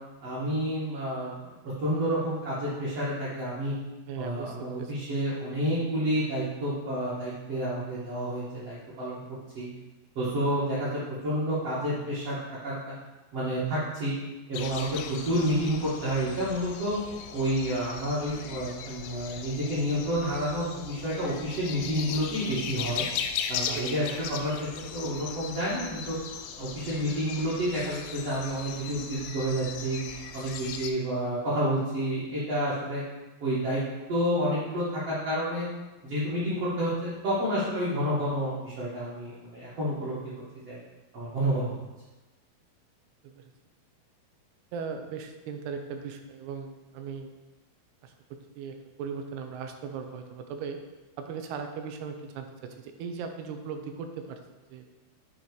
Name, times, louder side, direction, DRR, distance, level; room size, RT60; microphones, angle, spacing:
voice 1, 0.2-1.5 1.8-3.7 4.2-9.7 10.1-12.4 12.6-12.9 13.3-14.1 14.5-17.0 17.3-23.0 23.5-26.2 26.6-30.0 30.3-33.0 33.4-33.8 34.1-35.6 36.0-40.2 40.6-40.8 41.1-41.7, equal, 60° right, -10 dB, 1.6 m, -29 dB
voice 2, 4.1-4.9 23.7-23.9 43.2-43.4 44.7-47.3 48.0-48.1 48.6-50.8 51.2-54.4 54.7-54.9, right 6 dB, 85° right, 5 dB, 2.6 m, -38 dB
sound 1, 14.5-30.9, left 7 dB, 85° left, 2.6 m, -38 dB
7.6 x 2.9 x 4.6 m, 1.1 s
omnidirectional pair, 4.6 m